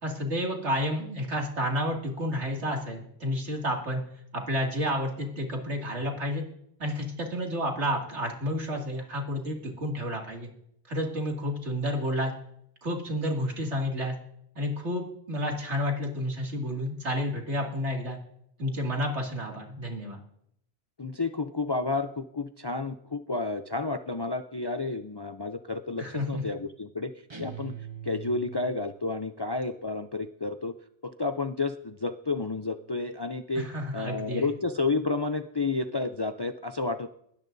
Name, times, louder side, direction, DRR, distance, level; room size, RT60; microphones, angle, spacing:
voice 1, 0.0-4.0 4.3-6.4 6.8-10.5 10.9-12.3 12.8-14.1 14.6-18.2 18.6-20.2 26.0-26.4 33.6-34.5, equal, 85° right, 0 dB, 2.8 m, -30 dB
voice 2, 21.0-27.1 27.4-27.7 28.0-30.7 31.0-33.7 33.9-37.1, left 3 dB, 40° left, 8 dB, 0.4 m, -31 dB
sound 1, 27.3-29.0, right 9 dB, 25° right, 1.0 m, -42 dB
20.5 x 17.5 x 2.7 m, 0.73 s
omnidirectional pair, 1.1 m